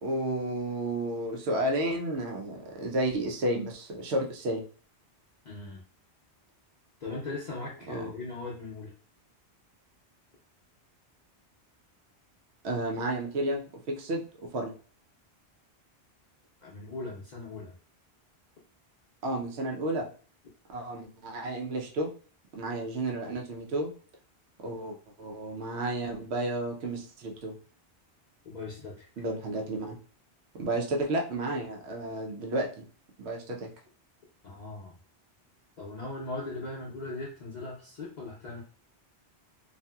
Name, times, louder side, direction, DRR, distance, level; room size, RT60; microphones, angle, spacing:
voice 1, 0.0-4.6 7.9-8.1 12.6-14.2 14.5-14.7 19.2-20.1 20.7-22.1 22.5-23.9 24.6-27.5 29.2-30.0 30.5-32.8 33.2-33.7, right 1 dB, 80° right, 1 dB, 0.9 m, -32 dB
voice 2, 5.4-5.8 7.0-8.9 16.6-17.7 28.4-29.1 34.4-35.0 35.8-38.6, left 3 dB, 50° left, -4 dB, 0.6 m, -39 dB
2.8 x 2.5 x 2.2 m, 0.41 s
omnidirectional pair, 1.1 m